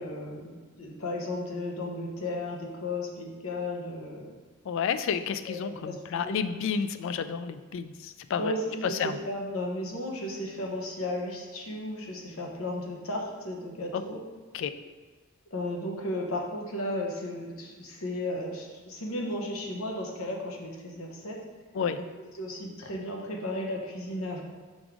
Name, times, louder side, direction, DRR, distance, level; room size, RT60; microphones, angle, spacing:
voice 1, 0.0-4.4 5.5-6.5 8.4-14.2 15.5-21.4 22.4-24.4, left 1 dB, 80° left, 1 dB, 1.0 m, -34 dB
voice 2, 4.7-8.5 9.0-9.2 13.9-14.0 14.5-14.7 21.7-22.0, left 6 dB, 65° left, 11 dB, 0.3 m, -31 dB
5.3 x 3.5 x 5.0 m, 1.3 s
head